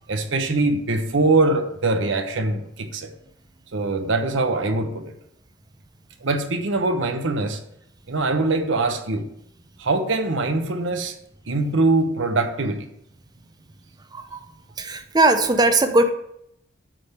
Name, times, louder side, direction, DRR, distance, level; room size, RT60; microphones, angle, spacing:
voice 1, 0.1-3.1 3.7-5.1 6.2-7.6 8.1-9.3 9.8-11.2 11.5-12.9, right 2 dB, 70° right, 6 dB, 0.9 m, -22 dB
voice 2, 14.1-14.5 14.8-16.1, right 2 dB, 20° right, 8 dB, 0.6 m, -19 dB
8.6 x 3.6 x 6.5 m, 0.76 s
head